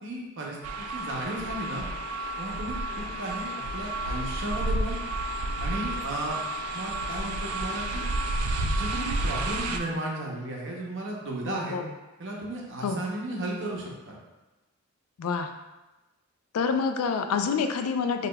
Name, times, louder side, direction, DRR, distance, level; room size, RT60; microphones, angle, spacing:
voice 1, 0.0-1.8 2.4-5.0 5.6-6.4 6.7-8.1 8.7-11.8 12.2-14.1, right 1 dB, 60° right, -2 dB, 0.7 m, -34 dB
sound 1, 0.6-9.8, right 1 dB, 85° right, 0.3 m, -31 dB
voice 2, 11.4-11.9 12.8-13.0 15.2-15.5 16.5-18.3, left 5 dB, 85° left, 7 dB, 0.3 m, -27 dB
4.8 x 2.3 x 2.2 m, 1.1 s
head